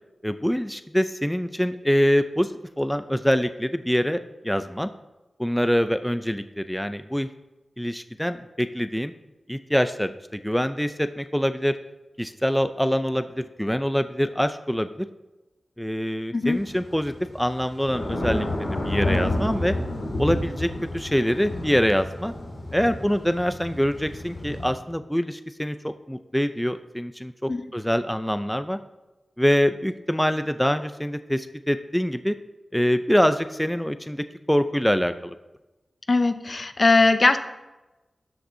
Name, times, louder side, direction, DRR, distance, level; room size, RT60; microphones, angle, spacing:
voice 1, 0.2-4.9 5.4-7.3 7.8-9.1 9.5-11.8 12.2-15.1 15.8-18.5 18.8-19.8 20.2-22.3 22.7-28.8 29.4-32.4 32.7-35.3, equal, 5° left, 10 dB, 0.4 m, -25 dB
Thunder / Rain, 16.4-24.7, left 1 dB, 85° left, 2.3 m, -30 dB
voice 2, 36.1-37.4, left 3 dB, 50° left, 9 dB, 0.6 m, -20 dB
13.0 x 7.6 x 2.7 m, 1.1 s
wide cardioid pair, 70°, 0 cm